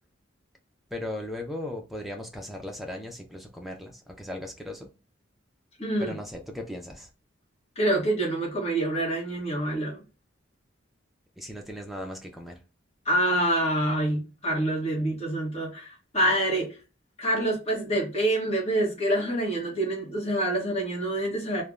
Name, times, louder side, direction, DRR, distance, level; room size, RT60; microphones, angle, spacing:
voice 1, 0.9-4.9 6.0-7.1 11.4-12.6, left 1 dB, ahead, 0.4 m, -37 dB
voice 2, 5.8-6.2 7.8-10.0 13.0-16.8 17.2-21.6, right 1 dB, 30° left, 1.0 m, -26 dB
3.2 x 2.1 x 2.3 m
head